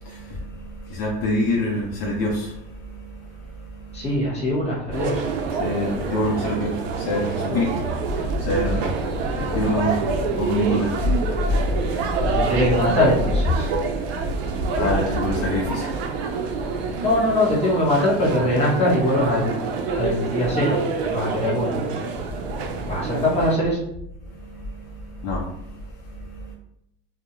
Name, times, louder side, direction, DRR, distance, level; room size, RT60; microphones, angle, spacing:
voice 1, 0.0-4.1 5.5-12.4 13.9-17.0 22.4-23.0 24.2-26.5, left 1 dB, 55° left, -2 dB, 0.5 m, -27 dB
voice 2, 3.9-5.2 12.3-13.7 14.8-14.9 17.0-19.5 19.9-20.8 21.0-22.0 22.9-23.8, left 1 dB, 20° left, -5 dB, 1.0 m, -22 dB
sound 1, 4.9-23.6, right 4 dB, 85° right, 0.5 m, -27 dB
2.3 x 2.1 x 2.9 m, 0.78 s
cardioid pair, 135°, 30 cm